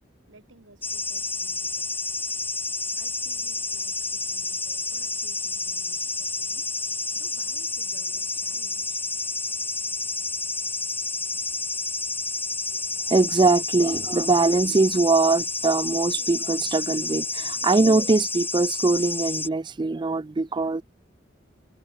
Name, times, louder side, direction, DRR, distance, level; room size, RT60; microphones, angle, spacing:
voice 1, 0.3-2.2 3.0-6.7 7.1-9.0 11.3-11.5, right 2 dB, 85° right, 4.3 m, -55 dB
sound 1, 0.8-19.5, left 3 dB, 10° left, 1.2 m, -30 dB
voice 2, 13.1-20.8, right 3 dB, 25° right, 0.4 m, -22 dB
head